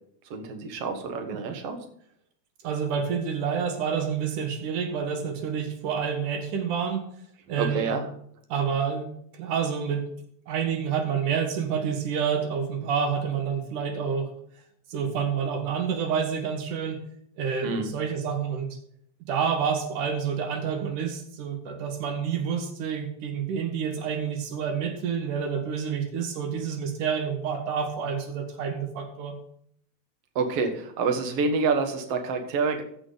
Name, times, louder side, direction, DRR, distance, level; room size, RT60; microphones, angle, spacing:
voice 1, 0.3-1.8 7.6-8.0 17.6-17.9 30.4-32.8, right 4 dB, 55° right, 6 dB, 2.2 m, -27 dB
voice 2, 2.6-7.0 7.5-7.9 8.5-9.1 9.3-10.1 10.5-14.3 14.9-17.0 17.4-18.8 19.3-29.4, right 7 dB, 85° right, 5 dB, 3.1 m, -28 dB
14.5 x 6.1 x 3.9 m, 0.66 s
omnidirectional pair, 3.5 m